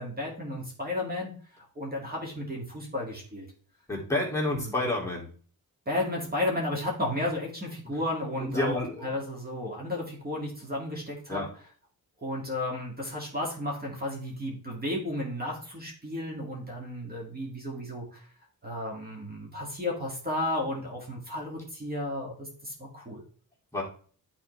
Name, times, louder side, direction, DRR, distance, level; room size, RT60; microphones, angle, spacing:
voice 1, 0.0-1.3 1.8-3.5 4.6-4.8 5.9-11.4 12.2-18.2 18.6-23.2, left 1 dB, 25° right, -2 dB, 2.1 m, -33 dB
voice 2, 3.9-5.3 8.5-8.9 11.3-11.5 23.7-23.8, left 2 dB, 10° left, -4 dB, 2.4 m, -28 dB
9.8 x 4.3 x 3.2 m, 0.43 s
cardioid pair, 105°, 37 cm